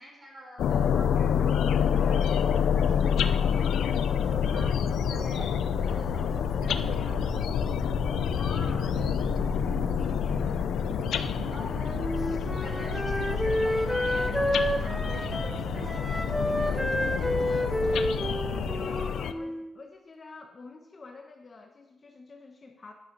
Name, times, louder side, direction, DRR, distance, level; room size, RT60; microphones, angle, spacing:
voice 1, 0.0-4.8 5.1-7.7 11.5-18.3, equal, 20° right, -1 dB, 4.2 m, -46 dB
sound 1, 0.6-19.3, left 8 dB, 85° left, 0.6 m, -28 dB
sound 2, 4.2-18.9, right 6 dB, 60° right, 0.6 m, -40 dB
voice 2, 8.3-10.6 15.5-16.0 18.8-22.9, left 3 dB, 35° left, 2 dB, 1.1 m, -47 dB
Wind instrument woodwind instrument, 12.0-19.7, equal, ahead, 0.8 m, -30 dB
11.5 x 10.5 x 4.0 m, 0.85 s
cardioid pair, 130°, 0 cm